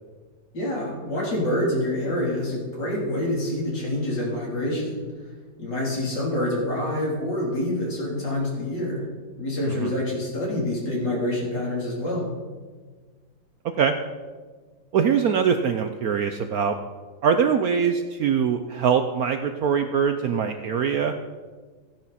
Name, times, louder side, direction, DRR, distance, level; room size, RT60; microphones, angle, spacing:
voice 1, 0.5-5.0 5.6-9.1 9.4-12.3, left 1 dB, 65° left, -4 dB, 4.1 m, -26 dB
voice 2, 14.9-16.7 17.2-21.1, right 7 dB, 70° right, 7 dB, 0.9 m, -23 dB
15.0 x 10.5 x 4.2 m, 1.5 s
omnidirectional pair, 2.1 m